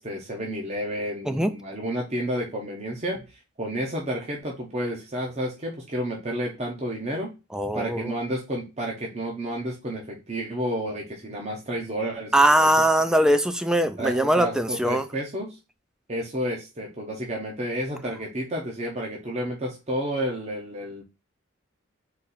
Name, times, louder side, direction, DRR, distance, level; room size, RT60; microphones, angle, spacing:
voice 1, 0.0-7.3 7.7-12.7 13.0-13.3 14.0-15.6 16.1-21.0, equal, 30° right, 0.8 m, -31 dB
voice 2, 7.5-8.1 12.3-15.0, right 1 dB, 5° right, 0.3 m, -21 dB
4.1 x 2.5 x 3.9 m
head